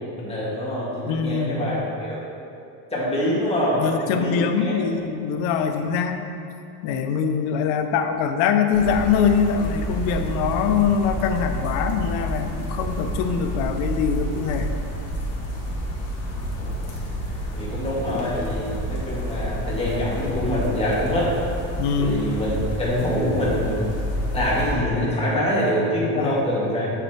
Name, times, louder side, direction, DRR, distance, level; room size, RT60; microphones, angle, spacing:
voice 1, 0.0-2.2 2.9-4.8 16.6-17.0 17.5-21.3 22.0-22.5 22.8-23.9 24.3-26.9, equal, 15° left, -7 dB, 1.9 m, -25 dB
voice 2, 1.1-1.7 3.8-6.2 6.8-14.7 21.8-22.3 26.0-26.4, left 6 dB, 90° left, 6 dB, 0.7 m, -23 dB
sound 1, 8.7-24.7, equal, 35° left, 1.4 m, -29 dB
7.0 x 5.8 x 4.3 m, 2.6 s
cardioid pair, 150°, 44 cm